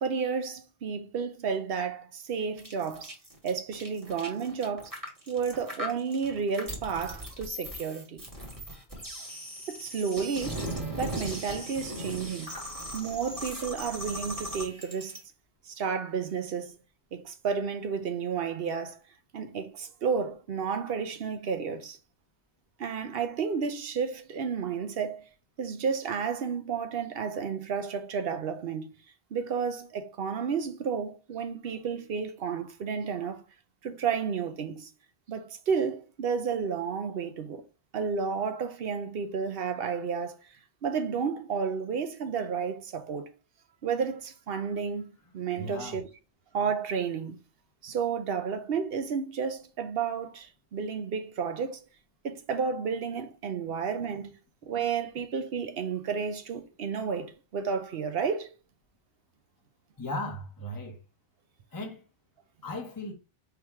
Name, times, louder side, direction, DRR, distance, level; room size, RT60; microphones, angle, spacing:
voice 1, 0.0-3.1 3.4-4.9 5.3-8.2 9.7-10.7 11.0-12.5 12.9-15.2 15.7-16.7 17.1-19.0 19.3-22.0 22.8-25.2 25.6-28.9 29.3-33.4 33.8-34.9 35.3-37.6 37.9-40.4 40.8-43.3 43.8-45.1 45.3-46.1 46.5-47.4 47.8-51.9 52.2-54.4 54.6-58.5, right 6 dB, 60° right, 0.9 m, -31 dB
sound 1, 2.6-15.2, equal, 15° right, 1.5 m, -38 dB
voice 2, 45.6-46.0 60.0-61.0 61.7-62.0 62.6-63.1, left 1 dB, 20° left, 0.7 m, -36 dB
3.6 x 2.9 x 4.6 m
omnidirectional pair, 1.2 m